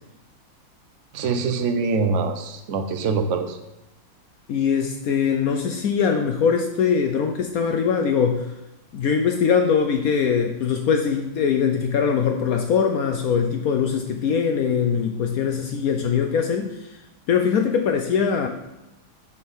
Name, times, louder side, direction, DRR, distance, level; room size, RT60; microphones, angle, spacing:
voice 1, 1.1-3.6, right 4 dB, 60° right, 6 dB, 0.8 m, -24 dB
voice 2, 4.5-8.5 8.9-17.0 17.3-18.5, left 6 dB, 80° left, 4 dB, 0.8 m, -22 dB
7.3 x 3.6 x 6.2 m, 0.94 s
omnidirectional pair, 2.2 m